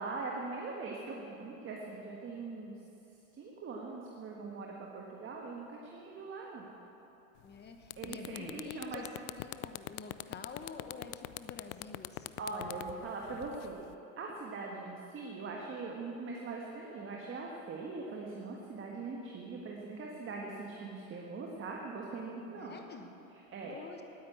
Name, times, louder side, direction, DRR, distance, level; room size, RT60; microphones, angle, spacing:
voice 1, 0.0-2.8 3.4-6.7 8.0-9.0 12.4-13.8 14.2-22.7 23.5-23.8, right 3 dB, 30° right, -1 dB, 1.5 m, -41 dB
sound 1, 7.4-7.5 7.8-13.9, left 20 dB, 55° left, 0.4 m, -42 dB
voice 2, 7.4-9.1 9.4-12.4 22.6-23.2 23.6-24.0, left 5 dB, 25° left, 4 dB, 1.2 m, -48 dB
9.7 x 9.7 x 8.6 m, 3.0 s
supercardioid pair, 115°, 41 cm